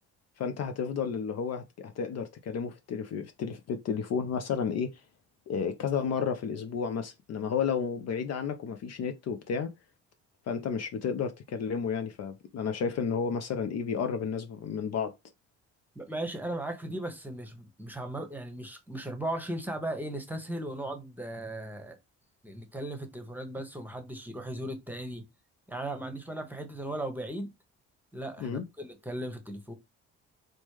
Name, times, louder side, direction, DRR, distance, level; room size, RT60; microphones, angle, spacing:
voice 1, 0.4-5.0 5.5-9.7 10.5-15.1 28.4-28.6, left 6 dB, 50° left, 0.5 m, -32 dB
voice 2, 15.9-22.0 22.4-25.2 25.7-27.5 28.1-29.7, right 1 dB, 5° right, 1.0 m, -37 dB
3.1 x 2.1 x 3.1 m
hypercardioid pair, 55°, 33 cm